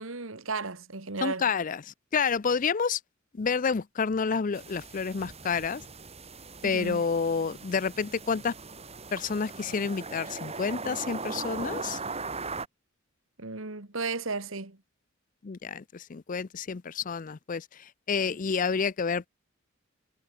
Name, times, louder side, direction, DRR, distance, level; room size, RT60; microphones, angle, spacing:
voice 1, 0.0-1.4 6.6-7.0 13.4-14.8, right 3 dB, 70° right, 2.0 m, -34 dB
voice 2, 1.2-3.0 3.3-5.8 6.6-8.5 9.1-12.0 15.4-19.3, left 5 dB, 40° left, 0.5 m, -29 dB
sound 1, 4.5-12.7, right 4 dB, 30° right, 4.8 m, -39 dB
head